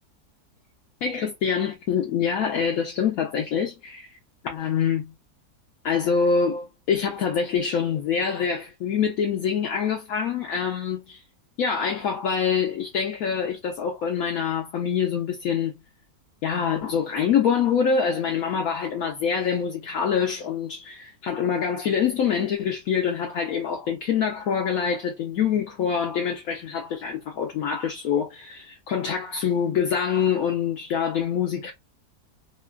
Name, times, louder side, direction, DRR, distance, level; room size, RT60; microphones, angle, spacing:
voice 1, 1.0-4.1 4.4-5.1 5.8-11.2 11.6-15.7 16.4-31.7, left 7 dB, 70° left, 1.0 m, -25 dB
3.1 x 2.2 x 2.3 m
omnidirectional pair, 1.7 m